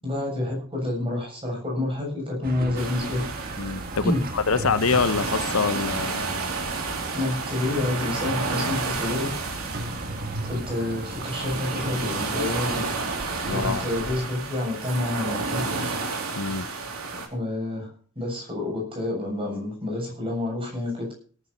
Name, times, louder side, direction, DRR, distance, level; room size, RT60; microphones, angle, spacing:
voice 1, 0.0-3.2 4.0-4.2 7.1-9.3 10.4-12.8 13.5-15.6 17.1-17.9 18.2-21.1, left 2 dB, 25° right, 0 dB, 7.6 m, -28 dB
sound 1, 2.4-14.2, right 2 dB, 45° right, 1.5 m, -36 dB
sound 2, 2.8-17.3, right 4 dB, 80° right, 2.9 m, -31 dB
voice 2, 3.6-6.2 13.5-13.8 16.3-16.7, left 4 dB, 75° left, 13 dB, 0.9 m, -25 dB
17.5 x 10.5 x 4.3 m, 0.44 s
head